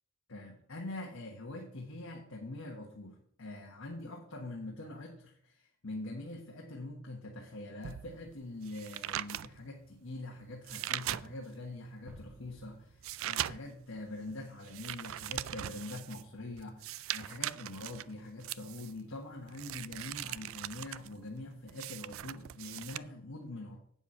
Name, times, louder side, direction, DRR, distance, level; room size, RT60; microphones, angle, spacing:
voice 1, 0.3-23.8, left 2 dB, 75° left, 0 dB, 1.4 m, -44 dB
sound 1, 7.8-11.7 12.1-23.0, right 13 dB, 70° right, 0.3 m, -41 dB
sound 2, 12.1-14.9, equal, 5° right, 1.7 m, -57 dB
8.3 x 7.1 x 5.5 m, 0.65 s
head